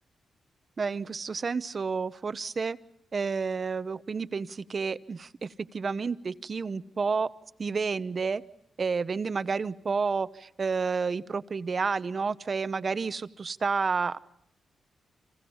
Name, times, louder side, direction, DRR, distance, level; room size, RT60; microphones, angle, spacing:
voice 1, 0.8-2.8 3.1-7.3 7.6-8.4 8.8-14.2, right 5 dB, 45° right, 13 dB, 0.9 m, -30 dB
29.5 x 26.5 x 5.5 m, 0.69 s
cardioid pair, 70°, 0 cm